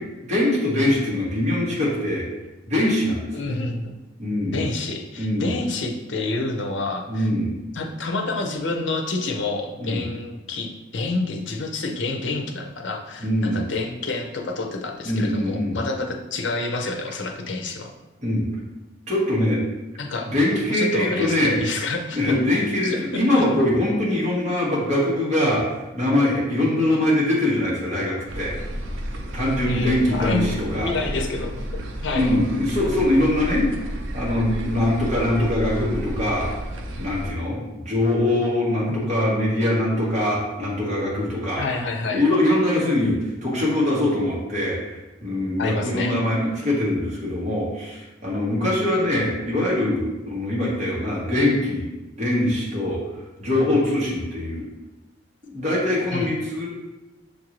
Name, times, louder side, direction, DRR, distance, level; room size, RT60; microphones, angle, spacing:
voice 1, 0.2-2.3 2.7-3.6 4.2-4.7 5.2-5.5 7.1-7.6 9.8-10.0 13.2-13.7 15.0-15.8 18.2-18.5 19.1-19.6 20.2-21.6 22.1-28.5 29.3-30.9 32.1-36.5 37.0-41.7 42.1-51.9 52.2-53.0 53.4-54.6 55.4-56.7, left 1 dB, 40° right, -6 dB, 1.4 m, -23 dB
voice 2, 3.3-3.9 4.4-7.3 7.7-17.9 20.0-20.3 20.7-22.3 22.8-23.4 29.7-31.5 32.0-32.3 38.9-39.2 41.6-42.2 45.6-46.2 56.1-56.3, left 3 dB, 70° left, 3 dB, 0.6 m, -28 dB
sound 1, 28.3-37.3, equal, 85° right, 0.5 m, -31 dB
6.6 x 2.6 x 3.0 m, 1.1 s
head